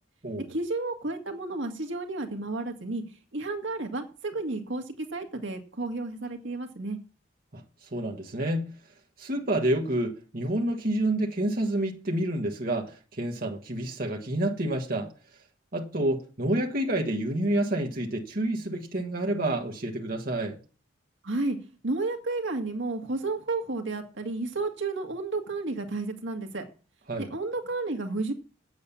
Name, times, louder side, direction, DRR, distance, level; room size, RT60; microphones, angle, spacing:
voice 1, 0.4-3.0 3.3-7.0 21.2-21.6 21.8-26.7 27.2-28.3, right 3 dB, 70° right, 1.8 m, -32 dB
voice 2, 7.5-8.7 9.2-15.1 15.7-20.6 27.1-27.3, right 1 dB, 45° right, 1.5 m, -29 dB
8.6 x 7.9 x 7.0 m
head